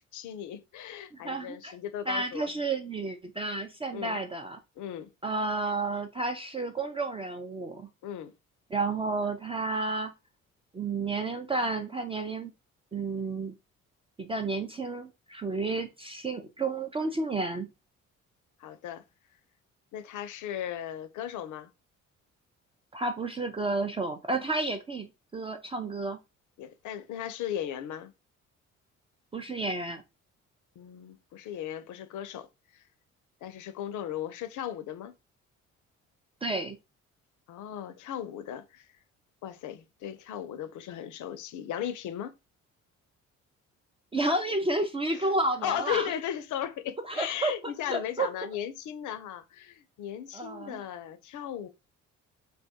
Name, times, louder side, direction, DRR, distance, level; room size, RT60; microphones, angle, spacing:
voice 1, 0.0-2.5 3.9-4.2 4.8-5.1 8.0-8.3 18.6-19.0 19.9-21.7 26.6-28.1 30.8-32.5 32.7-32.8 33.4-35.1 37.5-38.9 39.4-42.3 45.1-45.3 45.6-51.7, left 10 dB, 50° left, 0.5 m, -37 dB
voice 2, 1.1-1.8 2.1-4.6 5.2-7.9 8.7-10.1 10.7-12.5 12.9-13.6 14.2-17.7 22.9-26.2 29.3-30.0 36.4-36.8 44.1-46.1 47.1-47.5 47.9-48.3 50.3-50.8, right 2 dB, 15° right, 0.3 m, -31 dB
2.3 x 2.1 x 2.7 m
hypercardioid pair, 50°, 38 cm